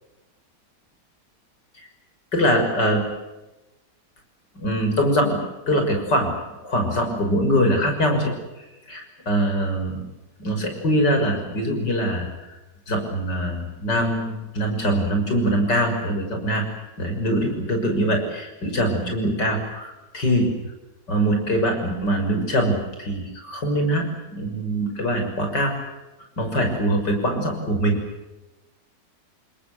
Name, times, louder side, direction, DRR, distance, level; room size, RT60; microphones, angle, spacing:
voice 1, 2.3-3.0 4.6-5.4 5.7-6.3 6.6-8.3 8.9-10.0 10.4-12.6 12.9-16.6 17.0-20.5 21.1-25.7 26.4-28.0, equal, 75° left, 4 dB, 6.8 m, -23 dB
28.0 x 21.5 x 8.3 m, 1.0 s
omnidirectional pair, 1.9 m